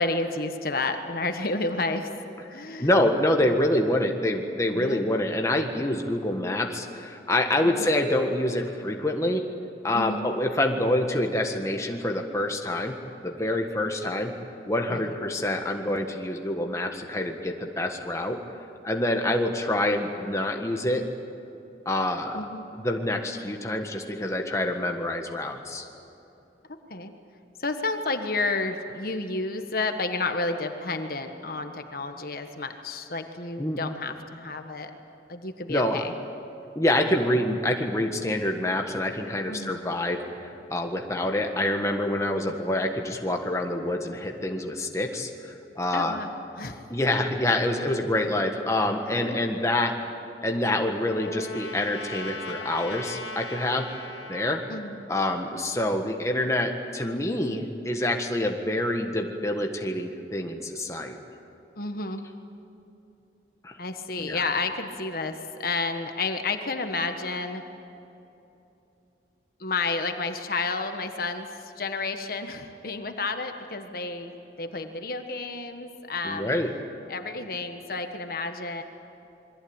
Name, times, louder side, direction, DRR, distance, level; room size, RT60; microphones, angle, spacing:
voice 1, 0.0-2.1 2.5-2.9 4.7-5.0 7.6-7.9 9.9-10.3 14.9-15.1 22.3-22.7 26.9-27.1 27.6-34.9 35.3-36.1 39.5-39.8 45.9-46.3 46.6-46.8 49.1-49.4 54.7-55.0 61.8-62.3 63.8-67.6 69.6-74.3 74.6-76.5 77.1-78.8, left 3 dB, 55° left, 6 dB, 1.4 m, -31 dB
voice 2, 2.5-9.5 9.8-13.0 13.2-14.3 14.7-18.4 18.8-21.0 21.8-22.4 22.7-25.8 33.6-33.8 35.7-36.0 36.7-46.2 46.9-50.0 50.4-53.9 54.3-54.6 55.1-61.2 63.6-63.8 64.2-64.4 76.2-76.7, left 1 dB, 15° left, 3 dB, 1.6 m, -26 dB
Trumpet, 50.1-54.7, left 2 dB, 90° left, 2.3 m, -39 dB
27.0 x 22.0 x 8.9 m, 2.9 s
head